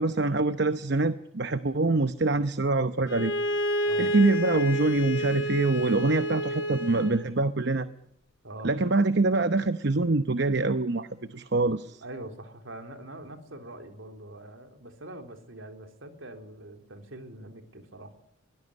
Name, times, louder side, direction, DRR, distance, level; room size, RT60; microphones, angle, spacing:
voice 1, 0.0-3.3 4.0-7.9 8.6-12.0, right 2 dB, 55° right, 11 dB, 0.9 m, -25 dB
Bowed string instrument, 3.1-7.3, equal, 65° left, 3.2 m, -29 dB
voice 2, 12.0-18.1, right 1 dB, 75° right, 6 dB, 3.6 m, -43 dB
23.0 x 18.0 x 9.9 m, 0.82 s
head